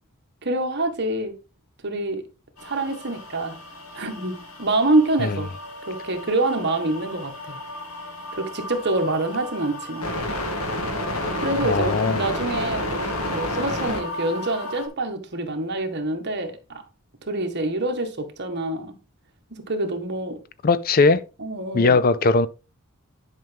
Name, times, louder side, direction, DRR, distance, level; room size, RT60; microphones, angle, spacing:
voice 1, 0.4-1.3 1.8-2.2 2.6-3.6 3.9-5.5 5.8-7.6 8.3-10.1 11.4-13.0 13.3-16.8 17.3-18.9 19.7-20.4 21.4-22.0, right 2 dB, 50° right, 1.7 m, -26 dB
sound 1, 2.6-14.9, left 1 dB, 85° left, 2.4 m, -31 dB
voice 2, 11.6-12.2 20.6-21.2 21.7-22.5, left 3 dB, 40° left, 0.5 m, -19 dB
11.0 x 5.9 x 3.5 m
head